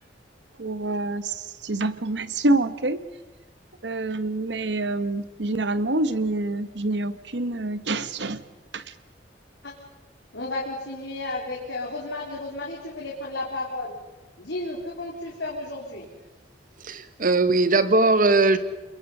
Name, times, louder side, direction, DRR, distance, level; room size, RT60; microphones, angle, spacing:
voice 1, 0.6-1.4 1.6-3.0 3.8-8.4 8.7-8.8, right 2 dB, 75° right, 14 dB, 1.2 m, -26 dB
voice 2, 10.3-13.9 14.4-16.1, left 2 dB, 85° left, -3 dB, 3.5 m, -33 dB
voice 3, 16.8-18.6, right 3 dB, 50° right, 12 dB, 1.4 m, -20 dB
29.0 x 22.0 x 5.5 m, 1.1 s
head